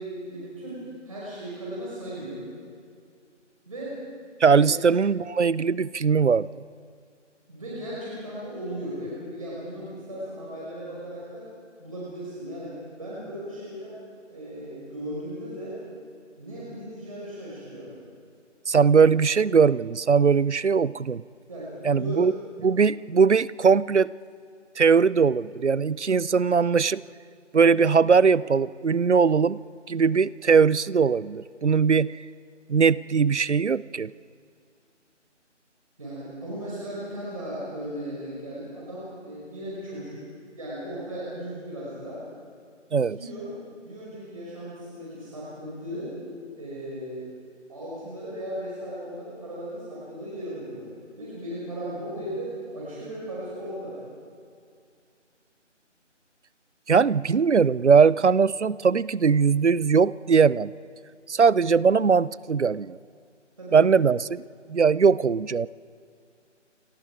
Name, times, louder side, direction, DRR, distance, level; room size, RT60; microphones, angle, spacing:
voice 1, 0.0-2.4 3.7-4.0 4.5-4.8 7.5-11.4 11.8-14.0 14.3-15.8 16.4-17.9 21.5-22.3 36.0-40.2 40.5-42.2 42.9-43.5 43.8-46.1 46.6-47.3 47.7-50.9 51.2-54.0 63.6-63.9, equal, 30° right, -7 dB, 5.5 m, -36 dB
voice 2, 4.4-6.6 18.7-21.2 21.8-22.3 22.6-24.1 24.8-27.0 27.5-29.6 29.9-32.2 32.7-34.1 42.9-43.2 56.9-60.7 61.3-63.0 63.7-64.4 64.7-65.7, right 5 dB, 65° right, 21 dB, 0.6 m, -20 dB
29.0 x 26.0 x 4.8 m, 2.3 s
figure-of-eight pair, 180°, 37 cm